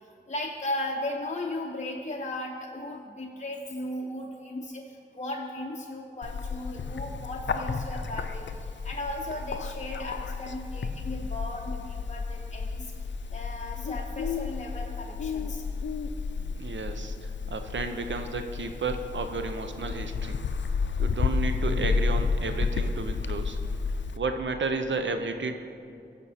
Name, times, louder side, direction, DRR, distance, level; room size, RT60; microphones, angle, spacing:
voice 1, 0.3-8.5 8.8-12.9 13.3-15.6, left 1 dB, 40° left, 0 dB, 0.7 m, -36 dB
Bird, 6.2-24.2, left 4 dB, 80° left, 0.4 m, -31 dB
voice 2, 16.3-20.4 21.0-23.6 24.2-25.6, right 3 dB, 80° right, 7 dB, 0.6 m, -32 dB
13.5 x 5.3 x 4.2 m, 2.5 s
wide cardioid pair, 40°, 19 cm